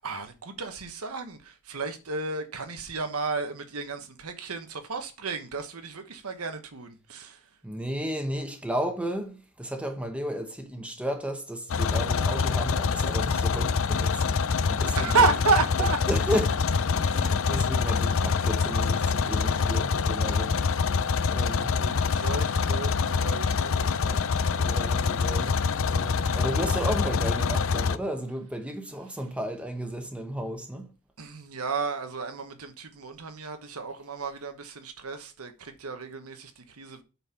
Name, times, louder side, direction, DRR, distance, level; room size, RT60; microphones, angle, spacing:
voice 1, 0.0-7.4 15.0-16.0 21.8-24.3 31.2-37.0, right 4 dB, 85° right, 1.2 m, -31 dB
voice 2, 7.6-14.4 14.7-15.3 15.8-16.7 16.9-20.6 21.3-21.7 24.6-30.9, equal, 5° right, 1.0 m, -33 dB
sound 1, 11.7-28.0, left 5 dB, 65° left, 0.5 m, -25 dB
8.0 x 4.3 x 5.7 m
head